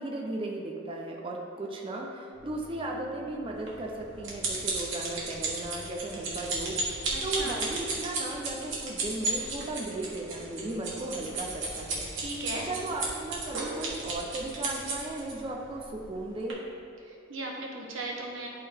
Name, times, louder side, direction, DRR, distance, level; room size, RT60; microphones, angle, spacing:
voice 1, 0.0-6.8 7.2-16.6, right 2 dB, 25° right, -1 dB, 0.6 m, -36 dB
sound 1, 2.3-15.9, equal, 45° left, 1.4 m, -53 dB
sound 2, 3.7-15.3 16.0-16.2 16.5-16.6, right 3 dB, 70° right, 1.5 m, -33 dB
voice 2, 7.1-7.6 12.1-12.7 17.1-18.5, right 2 dB, 90° right, -1 dB, 1.2 m, -37 dB
11.5 x 3.9 x 3.4 m, 2.6 s
head